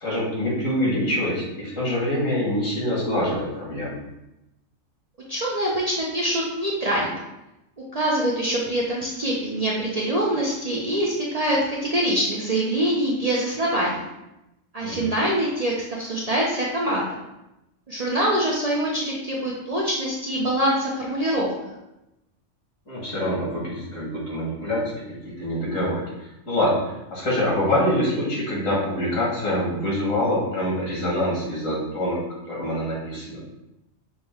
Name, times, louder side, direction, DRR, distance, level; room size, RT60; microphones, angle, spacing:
voice 1, 0.0-4.0 14.8-15.1 22.9-26.0 26.5-32.2 32.5-33.4, left 1 dB, 90° left, -5 dB, 1.9 m, -25 dB
voice 2, 5.3-7.2 7.9-14.0 14.7-17.1 17.9-21.5, right 1 dB, 50° right, -4 dB, 0.4 m, -24 dB
5.7 x 2.1 x 3.4 m, 0.92 s
omnidirectional pair, 1.3 m